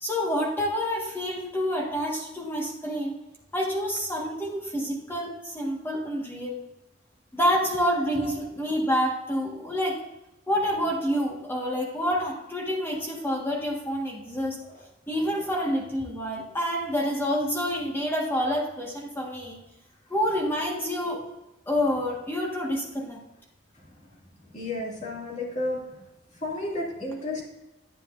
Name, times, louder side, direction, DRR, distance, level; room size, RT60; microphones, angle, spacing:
voice 1, 0.0-3.1 3.5-6.6 7.3-10.0 10.5-14.6 15.1-19.6 20.1-21.2 21.7-23.2, equal, 15° left, -2 dB, 1.6 m, -28 dB
voice 2, 24.5-25.8 26.4-27.4, left 2 dB, 40° left, -3 dB, 2.4 m, -31 dB
10.0 x 9.3 x 2.6 m, 0.97 s
head